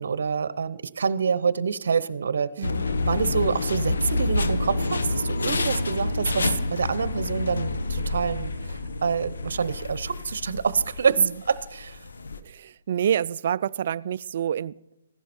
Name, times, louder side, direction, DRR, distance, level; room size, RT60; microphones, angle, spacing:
voice 1, 0.0-2.7 3.0-12.0, right 6 dB, 75° right, 0.8 m, -26 dB
sound 1, 2.6-12.4, left 3 dB, 90° left, 1.1 m, -28 dB
voice 2, 12.4-14.8, right 9 dB, 55° right, 0.3 m, -27 dB
15.5 x 11.5 x 4.3 m
hypercardioid pair, 155°, 0 cm